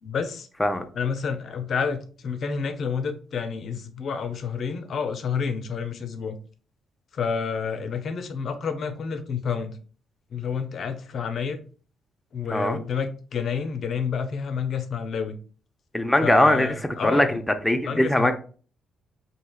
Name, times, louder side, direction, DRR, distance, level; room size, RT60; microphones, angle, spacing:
voice 1, 0.0-0.5 0.9-6.4 7.1-9.8 10.3-11.6 12.3-15.3 16.2-17.4 17.8-18.3, left 6 dB, 60° left, 8 dB, 0.6 m, -29 dB
voice 2, 15.9-16.7 17.0-18.3, left 1 dB, 10° left, 7 dB, 0.5 m, -21 dB
4.4 x 2.8 x 2.3 m, 0.40 s
cardioid pair, 90°, 0 cm